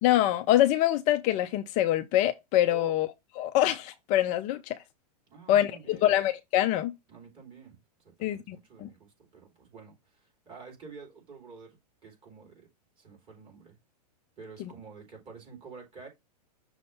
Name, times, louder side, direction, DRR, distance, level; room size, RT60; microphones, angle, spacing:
voice 1, 0.0-3.1 3.4-4.8 5.5-6.9 8.2-8.9 14.6-14.7, left 13 dB, 35° left, 0.5 m, -25 dB
voice 2, 5.3-6.1 7.1-7.8 8.0-12.7 13.0-13.8 14.4-16.1, right 4 dB, 25° right, 3.5 m, -49 dB
6.3 x 2.8 x 5.6 m
hypercardioid pair, 125°, 21 cm